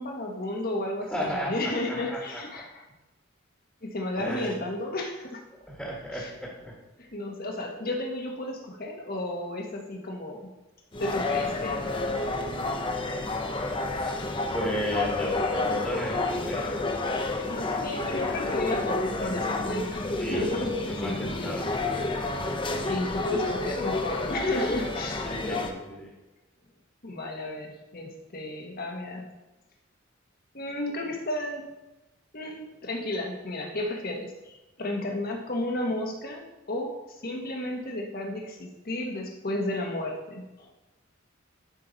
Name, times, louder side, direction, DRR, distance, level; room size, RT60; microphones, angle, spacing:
voice 1, 0.0-2.8 3.8-5.4 6.1-6.3 7.0-10.5 11.0-11.8 14.4-14.5 17.5-22.2 22.9-25.3 27.0-29.2 30.5-31.6 32.3-40.7, left 1 dB, 45° left, 1 dB, 1.5 m, -33 dB
voice 2, 1.1-1.6 1.9-2.4 4.2-4.6 5.7-6.7 13.9-14.3 14.5-17.0 20.2-22.0 22.7-22.8 25.2-26.1, equal, 5° left, -4 dB, 1.7 m, -34 dB
sound 1, 10.9-25.7, left 2 dB, 25° left, 0.7 m, -30 dB
11.5 x 5.7 x 4.1 m, 1.0 s
head